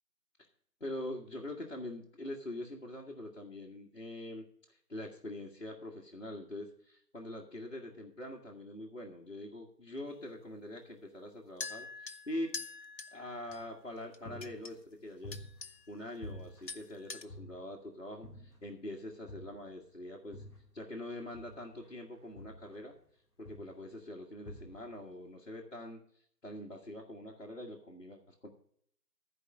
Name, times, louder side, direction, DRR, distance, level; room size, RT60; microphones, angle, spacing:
voice 1, 0.8-12.5 13.1-15.5 15.9-20.4 20.7-23.0 23.4-26.0 26.4-28.5, left 1 dB, 45° left, -4 dB, 1.8 m, -44 dB
sound 1, 11.6-13.6 14.1-14.7 15.3-15.9 16.2-16.4 16.7-17.2, left 4 dB, 85° left, 1.1 m, -45 dB
sound 2, 13.5-13.9 14.3-15.9 16.2-17.8 18.2-18.8 19.3-20.8 21.3-23.1 23.4-23.9 24.4-25.0, left 1 dB, 15° left, 2.5 m, -50 dB
13.0 x 5.0 x 7.6 m, 0.65 s
figure-of-eight pair, 175°, 49 cm